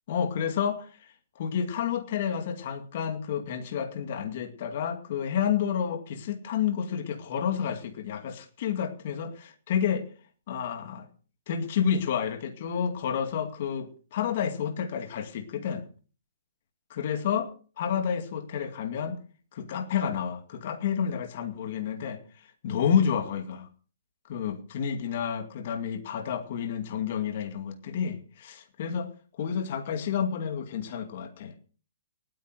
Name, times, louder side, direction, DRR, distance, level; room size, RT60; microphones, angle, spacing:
voice 1, 0.1-1.1 1.4-10.1 10.5-11.1 11.5-15.9 16.9-19.2 19.5-22.2 22.6-23.7 24.3-29.1 29.4-31.5, left 8 dB, 35° left, 7 dB, 2.2 m, -30 dB
18.5 x 9.4 x 6.3 m, 0.40 s
hypercardioid pair, 180°, 0 cm